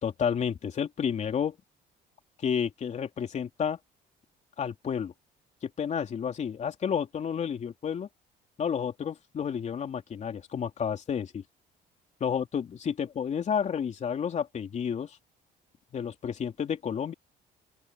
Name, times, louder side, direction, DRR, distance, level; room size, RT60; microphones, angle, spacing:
voice 1, 0.0-1.6 2.4-3.8 4.6-5.1 5.6-8.1 8.6-11.4 12.2-15.2 15.9-17.1, left 7 dB, 45° left, 3.3 m, -31 dB
open air
cardioid pair, 110°, 17 cm